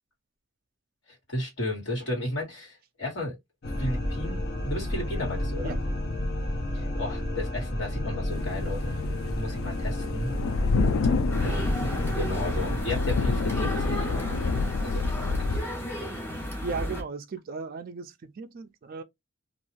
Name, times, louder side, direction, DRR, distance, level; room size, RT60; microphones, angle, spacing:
voice 1, 1.3-3.4 3.8-5.7 6.7-10.3 11.4-14.3 14.8-16.2, left 1 dB, 65° left, 1.5 m, -34 dB
sound 1, 3.6-12.8, left 1 dB, 50° left, 0.7 m, -30 dB
sound 2, 8.3-15.6, left 4 dB, 85° left, 0.3 m, -29 dB
sound 3, 11.3-17.0, equal, 10° left, 0.6 m, -35 dB
voice 2, 16.6-19.0, right 4 dB, 45° right, 0.3 m, -36 dB
2.4 x 2.3 x 3.0 m
head